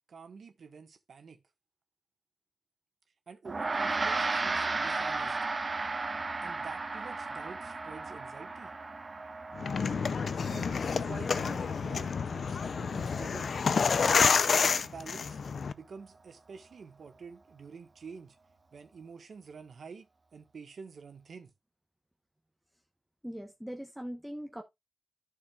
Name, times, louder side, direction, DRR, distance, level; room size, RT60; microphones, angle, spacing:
voice 1, 0.1-1.4 3.3-5.4 6.4-8.8 10.5-13.5 14.5-15.4 15.7-18.4 18.7-20.1 20.3-21.5, right 5 dB, 70° right, 1.5 m, -48 dB
Gong, 3.4-13.0, right 3 dB, 35° right, 1.1 m, -35 dB
sound 1, 9.6-15.7, left 5 dB, 65° left, 0.6 m, -28 dB
voice 2, 23.2-24.6, equal, 5° right, 1.1 m, -40 dB
12.0 x 6.6 x 2.5 m
wide cardioid pair, 125°, 0 cm